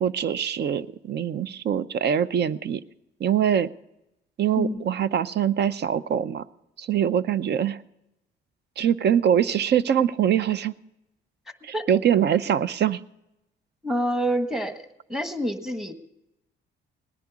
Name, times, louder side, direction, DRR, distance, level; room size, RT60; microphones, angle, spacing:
voice 1, 0.0-2.8 3.2-3.7 4.4-6.4 6.8-7.8 8.8-10.7 11.6-13.0, right 9 dB, 60° right, 16 dB, 0.6 m, -23 dB
voice 2, 4.6-4.9 11.7-11.9 13.8-15.9, equal, ahead, 8 dB, 1.3 m, -27 dB
19.0 x 10.5 x 4.7 m, 0.90 s
cardioid pair, 90°, 20 cm